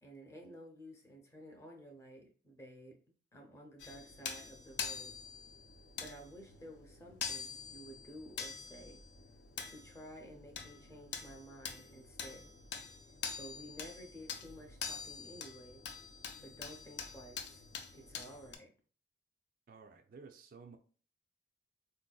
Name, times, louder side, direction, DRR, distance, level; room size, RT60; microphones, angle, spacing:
voice 1, 0.0-3.0 3.3-5.1 6.0-9.0 9.6-12.5 13.4-15.8 16.4-17.6 17.9-18.7, equal, 15° left, 0.6 m, -53 dB
sound 1, 3.8-18.6, left 6 dB, 60° left, 0.4 m, -45 dB
voice 2, 19.7-20.8, right 5 dB, 45° right, 0.3 m, -54 dB
4.0 x 2.6 x 2.2 m
head